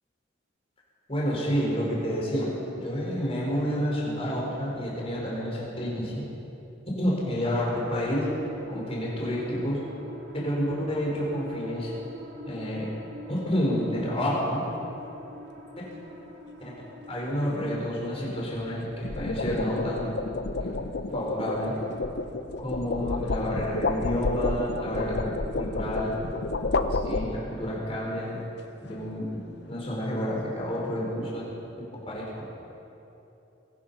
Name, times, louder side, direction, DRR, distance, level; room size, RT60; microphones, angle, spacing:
voice 1, 1.1-6.1 7.0-8.3 8.7-9.8 10.4-11.9 12.5-12.9 13.3-14.6 17.1-20.1 20.6-20.8 21.1-21.8 22.6-25.3 25.6-26.2 26.9-28.4 28.8-29.4 29.7-31.4 32.1-32.4, equal, 30° left, -4 dB, 4.4 m, -29 dB
sound 1, 8.0-18.2, left 1 dB, 60° right, 2.4 m, -44 dB
sound 2, 13.4-13.7 18.8-27.7, left 3 dB, 60° left, 0.6 m, -31 dB
22.5 x 10.5 x 5.7 m, 3.0 s
head